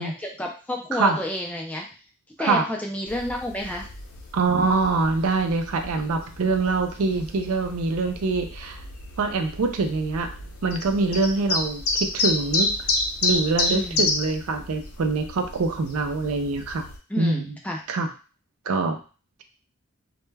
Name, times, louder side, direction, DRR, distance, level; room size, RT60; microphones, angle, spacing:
voice 1, 0.0-1.9 2.4-3.9 13.7-14.0 17.1-17.8, left 1 dB, 5° left, 0 dB, 0.3 m, -30 dB
sound 1, 3.1-17.0, left 3 dB, 75° left, 0.5 m, -30 dB
voice 2, 4.3-8.8 9.2-10.3 10.6-12.7 13.2-16.9 17.2-17.4 17.9-18.1 18.7-19.0, right 3 dB, 75° right, 6 dB, 0.4 m, -24 dB
2.2 x 2.1 x 3.2 m, 0.36 s
head